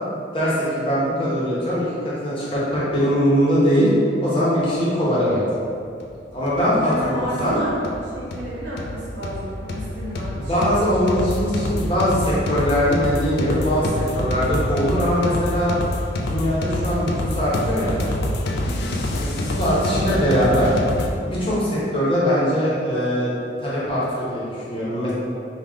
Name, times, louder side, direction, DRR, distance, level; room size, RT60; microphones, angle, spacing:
voice 1, 0.3-3.9 4.2-5.4 6.3-7.6 10.4-13.9 14.1-15.7 16.1-18.0 19.2-20.7 21.2-23.3 23.6-25.1, equal, 30° left, -9 dB, 0.8 m, -21 dB
sound 1, 5.5-5.6 6.0-6.1 6.5-21.1, left 1 dB, 55° left, 0.3 m, -27 dB
voice 2, 6.8-10.8 18.7-19.0, equal, 65° right, -8 dB, 0.8 m, -32 dB
3.4 x 2.3 x 3.5 m, 2.5 s
head